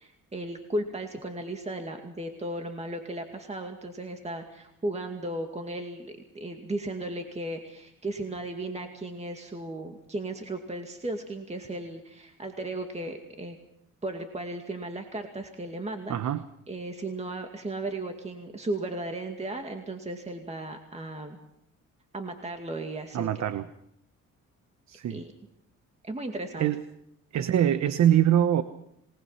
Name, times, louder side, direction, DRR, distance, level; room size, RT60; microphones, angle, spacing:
voice 1, 0.0-13.6 14.0-16.2 16.7-21.4 22.1-23.3 25.1-25.3 26.0-26.7, right 1 dB, 20° right, 4 dB, 2.3 m, -35 dB
voice 2, 16.1-16.4 23.1-23.7 24.9-25.2 26.6-26.8 27.3-28.6, right 10 dB, 65° right, 12 dB, 1.1 m, -23 dB
27.5 x 20.0 x 5.8 m, 0.74 s
cardioid pair, 90°, 30 cm